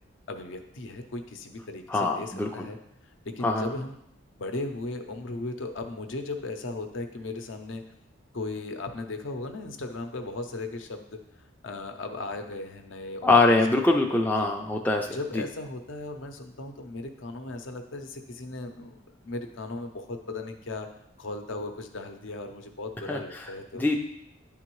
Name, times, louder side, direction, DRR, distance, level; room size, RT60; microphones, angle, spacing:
voice 1, 0.3-2.8 3.2-4.0 4.3-7.8 8.3-11.2 11.6-14.5 15.1-20.9 21.2-23.9, left 2 dB, 70° left, 6 dB, 0.6 m, -37 dB
voice 2, 1.9-2.7 3.4-3.7 13.2-15.1 15.3-15.4 23.1-23.5 23.7-24.0, left 2 dB, 10° left, 1 dB, 0.3 m, -23 dB
9.5 x 3.7 x 3.0 m, 0.75 s
head